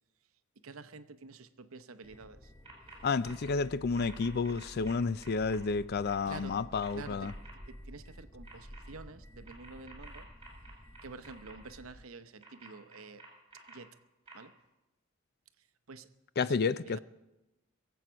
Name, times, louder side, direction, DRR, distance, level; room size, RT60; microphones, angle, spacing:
voice 1, 0.6-2.5 6.3-7.4 7.7-10.3 11.0-13.2 13.7-14.0 14.3-14.5 15.6-16.1 16.4-17.0, right 3 dB, 65° right, 0.8 m, -49 dB
sound 1, 2.0-12.1, equal, 10° left, 0.7 m, -51 dB
sound 2, 2.6-3.0 3.2-3.5 3.9-5.6 6.1-6.4 6.8-7.5 8.4-8.8 9.4-11.5 12.4-13.7 14.3-14.4, right 4 dB, 25° right, 5.1 m, -52 dB
voice 2, 3.0-7.3 16.4-17.0, left 4 dB, 45° left, 0.4 m, -31 dB
22.0 x 8.0 x 6.1 m
head